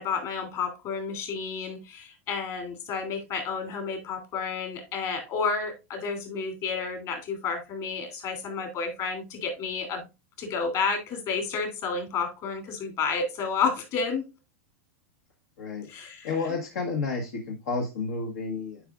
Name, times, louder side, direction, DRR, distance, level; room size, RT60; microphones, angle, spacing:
voice 1, 0.0-10.1 10.4-14.3 15.9-16.6, left 5 dB, 45° left, 2.7 m, -31 dB
voice 2, 16.2-18.8, left 4 dB, 70° left, 1.3 m, -31 dB
9.4 x 4.9 x 2.4 m
hypercardioid pair, 105°, 8 cm